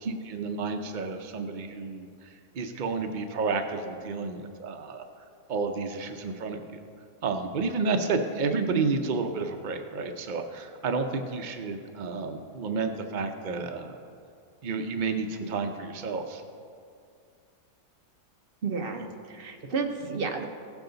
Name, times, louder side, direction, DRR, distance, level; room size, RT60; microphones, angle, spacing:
voice 1, 0.3-2.1 2.5-5.0 5.5-6.8 7.2-14.0 14.6-16.4, right 4 dB, 85° right, 5 dB, 0.4 m, -31 dB
voice 2, 8.5-9.0 18.6-20.4, right 5 dB, 45° right, 3 dB, 0.8 m, -31 dB
16.0 x 7.1 x 3.9 m, 2.4 s
omnidirectional pair, 1.7 m